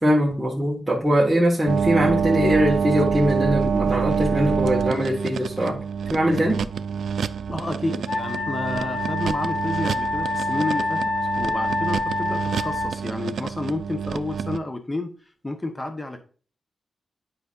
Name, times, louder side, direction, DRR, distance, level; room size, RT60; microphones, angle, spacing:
voice 1, 0.0-5.8 6.1-6.7, equal, 10° right, -5 dB, 1.7 m, -21 dB
sound 1, 1.7-14.6, right 7 dB, 85° right, 0.4 m, -27 dB
voice 2, 7.5-11.0 11.4-15.1 15.4-16.2, left 2 dB, 20° left, 7 dB, 0.9 m, -30 dB
Wind instrument woodwind instrument, 8.1-13.0, left 2 dB, 70° left, 1.8 m, -27 dB
9.4 x 5.0 x 2.5 m, 0.39 s
wide cardioid pair, 120°, 0 cm